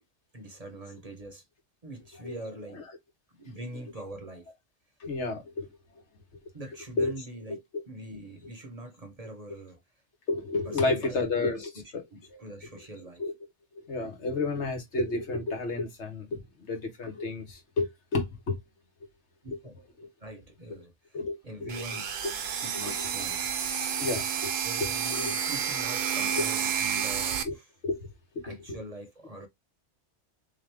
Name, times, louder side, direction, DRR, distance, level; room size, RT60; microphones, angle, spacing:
voice 1, 0.3-1.4 1.8-2.8 3.3-4.5 6.5-7.6 7.9-9.8 10.6-11.2 11.4-11.6 12.1-13.2 19.4-19.7 20.2-21.2 21.4-22.1 22.6-23.5 24.6-27.7 28.4-29.5, right 1 dB, 35° right, 0.8 m, -43 dB
voice 2, 5.0-5.7 7.0-7.1 7.5-7.8 10.3-12.0 12.3-12.4 13.2-13.3 13.8-18.6 19.5-19.6 20.0-20.1 21.1-21.7 22.8-22.9 24.0-24.5 24.8-25.3 26.4-26.5 27.4-27.5 27.8-28.1 28.3-28.8, left 3 dB, 75° left, 1.5 m, -31 dB
sound 1, 21.7-27.4, right 7 dB, 65° right, 0.9 m, -30 dB
3.6 x 3.0 x 3.3 m
omnidirectional pair, 1.2 m